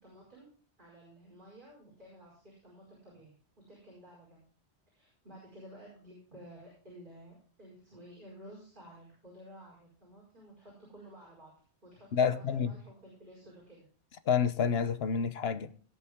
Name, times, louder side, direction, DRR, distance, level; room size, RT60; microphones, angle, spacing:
voice 1, 0.0-0.5 0.8-3.3 3.7-4.4 4.9-11.5 11.8-13.9, right 1 dB, 45° right, 5.3 m, -53 dB
voice 2, 12.1-12.7 14.3-15.7, left 7 dB, 65° left, 1.1 m, -28 dB
18.5 x 7.3 x 3.6 m
omnidirectional pair, 1.1 m